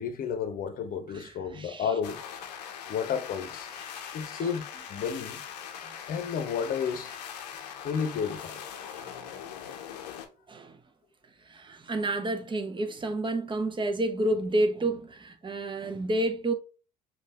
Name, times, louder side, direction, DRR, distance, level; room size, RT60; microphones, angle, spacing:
voice 1, 0.0-2.2 2.9-3.7 4.1-4.6 4.9-5.4 6.1-7.1 7.8-8.6, left 7 dB, 45° left, 0.9 m, -31 dB
voice 2, 1.1-1.9 3.9-4.5 8.9-9.3 10.5-10.8 11.4-16.5, right 1 dB, 25° right, 0.9 m, -30 dB
sound 1, 2.0-10.3, left 8 dB, 70° left, 0.7 m, -41 dB
5.3 x 2.6 x 3.3 m
figure-of-eight pair, 55°, 21 cm